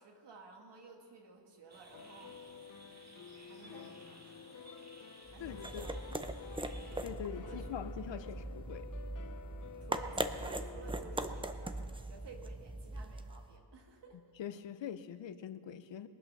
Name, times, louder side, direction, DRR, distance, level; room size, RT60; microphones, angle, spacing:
voice 1, 0.0-2.4 3.5-4.7 5.3-6.0 6.3-6.7 7.4-7.7 8.1-8.2 9.8-14.2, right 4 dB, 70° right, 3 dB, 2.0 m, -55 dB
sound 1, 1.7-7.0, right 2 dB, 35° right, 2.1 m, -58 dB
sound 2, 1.9-11.8, left 6 dB, 45° left, 0.7 m, -52 dB
screw top platstic open and close, 5.3-13.5, right 2 dB, 10° right, 0.6 m, -41 dB
voice 2, 5.4-6.0 7.0-8.9 14.4-16.1, left 9 dB, 85° left, 12 dB, 0.8 m, -43 dB
22.0 x 8.8 x 6.6 m, 2.3 s
wide cardioid pair, 125°, 44 cm